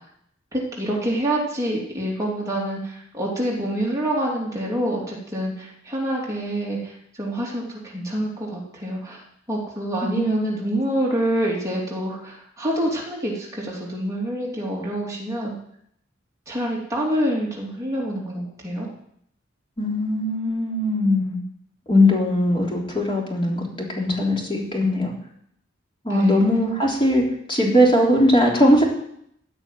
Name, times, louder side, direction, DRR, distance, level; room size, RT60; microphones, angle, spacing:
voice 1, 0.5-6.9 7.2-9.2 9.5-15.5 16.5-18.9 26.1-26.5, right 1 dB, 15° right, -4 dB, 3.1 m, -26 dB
voice 2, 10.0-10.4 19.8-21.4 21.9-25.1 26.0-27.2 27.5-28.8, left 1 dB, 25° left, -2 dB, 3.6 m, -20 dB
15.0 x 6.2 x 9.3 m, 0.72 s
head